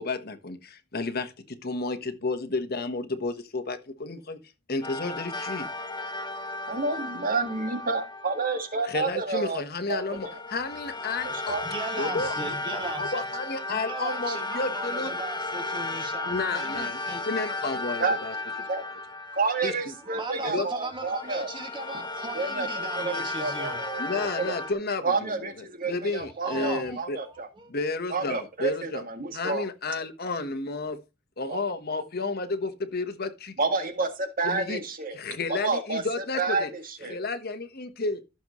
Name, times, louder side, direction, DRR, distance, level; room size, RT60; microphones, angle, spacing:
voice 1, 0.0-4.4 4.7-5.7 8.8-11.6 12.0-12.3 13.0-15.1 16.2-17.0 17.3-18.3 19.6-19.7 20.4-20.7 24.0-25.5 25.8-27.2 27.7-29.0 29.3-31.0 31.4-33.5 34.4-34.8 35.1-36.7 37.1-38.2, left 3 dB, 55° left, 1.3 m, -31 dB
sound 1, 4.8-9.0 9.9-20.4 20.9-24.7, left 2 dB, 25° left, 1.1 m, -34 dB
voice 2, 6.7-9.6 9.9-10.4 11.5-11.7 18.0-18.2 18.7-18.8 19.4-21.5 22.3-24.5 25.0-27.5 28.1-29.6 31.5-31.6 33.6-35.2 35.5-36.0 36.4-37.2, right 4 dB, 45° right, 1.9 m, -29 dB
voice 3, 11.5-13.1 13.7-17.2 19.8-24.3 26.4-27.7, right 2 dB, 25° right, 2.2 m, -38 dB
14.5 x 7.1 x 3.1 m
head